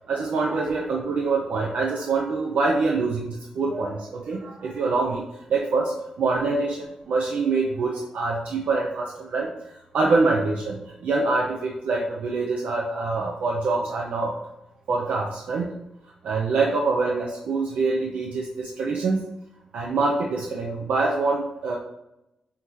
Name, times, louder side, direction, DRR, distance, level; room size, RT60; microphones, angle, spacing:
voice 1, 0.1-14.3 14.9-15.8 16.2-19.3 19.7-21.8, right 3 dB, 85° right, -1 dB, 0.5 m, -25 dB
5.7 x 2.7 x 3.1 m, 0.88 s
wide cardioid pair, 120°, 2 cm